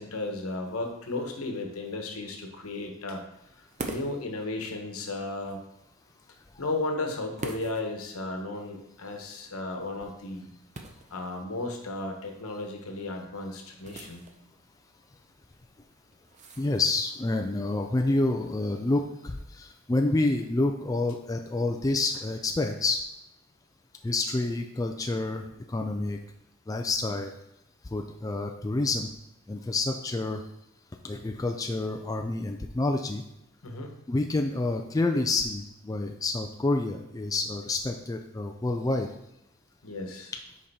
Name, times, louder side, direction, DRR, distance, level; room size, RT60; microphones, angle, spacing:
voice 1, 0.0-3.2 3.6-5.6 6.6-10.5 11.1-14.2 33.6-33.9 39.8-40.3, left 2 dB, 80° left, 4 dB, 1.1 m, -34 dB
sound 1, 3.7-17.2, right 2 dB, 35° right, 0.6 m, -47 dB
voice 2, 16.6-23.0 24.0-26.2 26.7-27.3 27.9-29.1 29.5-30.4 31.0-33.2 34.1-39.1, left 2 dB, 15° left, 4 dB, 0.3 m, -28 dB
5.4 x 5.2 x 4.1 m, 0.82 s
head